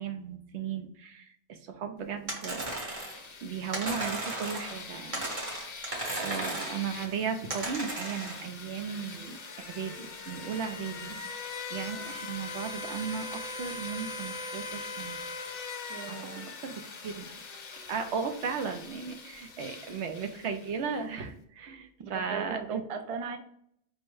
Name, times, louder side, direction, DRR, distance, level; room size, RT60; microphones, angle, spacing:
voice 1, 0.0-2.8 3.4-5.7 6.2-15.2 16.1-16.2 16.6-17.3 17.9-22.8, right 6 dB, 80° right, 6 dB, 0.9 m, -36 dB
sound 1, 2.3-3.2 3.7-4.8 5.1-6.9 7.5-8.4, right 2 dB, 35° right, 0.9 m, -35 dB
sound 2, 2.4-21.0, left 4 dB, 45° left, 0.6 m, -42 dB
voice 2, 15.9-16.5 22.0-23.4, right 5 dB, 50° right, 7 dB, 0.4 m, -37 dB
4.5 x 2.1 x 4.6 m, 0.69 s
omnidirectional pair, 1.1 m